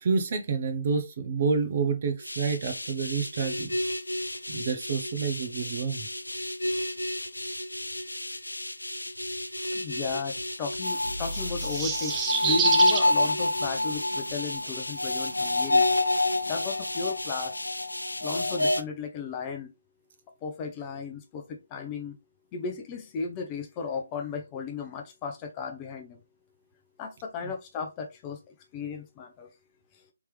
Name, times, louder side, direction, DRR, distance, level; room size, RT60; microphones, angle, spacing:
voice 1, 0.0-3.7 4.5-6.1, right 5 dB, 45° right, 0.8 m, -28 dB
sound 1, 2.2-18.8, left 2 dB, 90° left, 0.4 m, -29 dB
sound 2, 9.5-14.6, equal, 70° right, 1.2 m, -42 dB
voice 2, 9.7-15.9 16.5-17.5 18.2-19.7 20.4-22.2 22.5-26.2 27.0-29.5, left 5 dB, 20° left, 0.7 m, -35 dB
sound 3, 11.3-13.1, right 7 dB, 15° right, 0.4 m, -28 dB
3.5 x 2.9 x 3.2 m
figure-of-eight pair, 145°, 0 cm